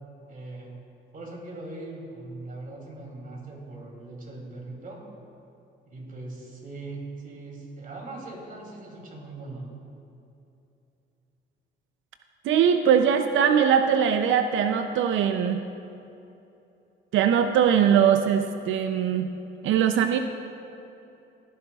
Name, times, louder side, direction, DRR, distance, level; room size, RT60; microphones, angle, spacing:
voice 1, 0.2-0.7 1.1-5.0 5.8-9.7, right 2 dB, 45° right, -1 dB, 2.8 m, -40 dB
voice 2, 12.4-15.6 17.1-19.3 19.6-20.2, right 8 dB, 80° right, 7 dB, 0.5 m, -21 dB
17.5 x 10.5 x 2.3 m, 2.8 s
cardioid pair, 90°, 20 cm